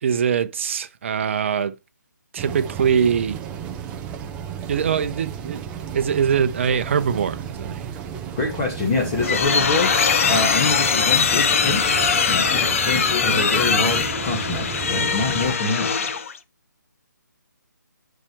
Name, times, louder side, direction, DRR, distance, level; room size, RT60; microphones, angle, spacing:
voice 1, 0.0-1.8 2.3-3.4 4.7-5.6 5.9-7.8 12.3-12.5, right 7 dB, 40° right, 0.9 m, -22 dB
sound 1, 2.4-15.6, right 8 dB, 10° right, 0.5 m, -34 dB
voice 2, 8.4-9.9 10.3-12.0 12.3-16.1, left 3 dB, 25° left, 1.9 m, -25 dB
sound 2, 8.8-16.4, left 6 dB, 45° left, 0.8 m, -21 dB
10.0 x 5.1 x 3.1 m
figure-of-eight pair, 150°, 10 cm